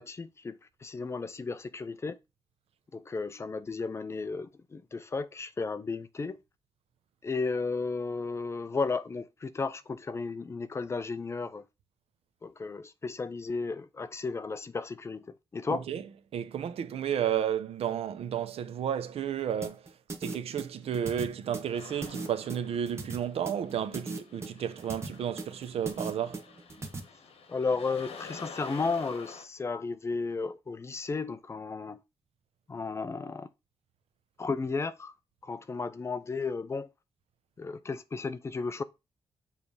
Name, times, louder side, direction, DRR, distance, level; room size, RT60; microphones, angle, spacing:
voice 1, 0.0-2.2 2.9-6.4 7.2-11.7 12.4-15.8 27.5-32.0 32.7-33.5 34.4-35.1 35.4-36.9 37.6-38.8, left 4 dB, 25° left, 0.5 m, -34 dB
voice 2, 15.7-16.0 16.3-19.9 20.2-26.4, right 9 dB, 85° right, 0.7 m, -32 dB
sound 1, 19.6-27.0, right 3 dB, 25° right, 1.1 m, -38 dB
sound 2, 21.7-29.5, left 5 dB, 75° left, 1.2 m, -48 dB
7.2 x 3.3 x 5.3 m
wide cardioid pair, 150°, 10 cm